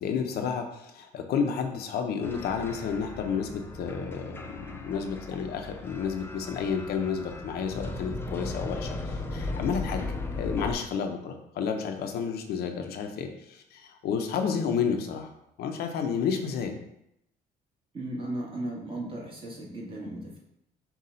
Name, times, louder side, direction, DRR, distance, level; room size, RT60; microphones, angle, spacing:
voice 1, 0.0-15.3 15.6-16.8, left 6 dB, 70° left, 4 dB, 0.6 m, -31 dB
sound 1, 2.2-10.7, left 2 dB, 15° left, 0.4 m, -37 dB
voice 2, 17.9-20.4, right 1 dB, 30° right, -3 dB, 1.4 m, -36 dB
5.5 x 2.3 x 3.9 m, 0.78 s
cardioid pair, 110°, 17 cm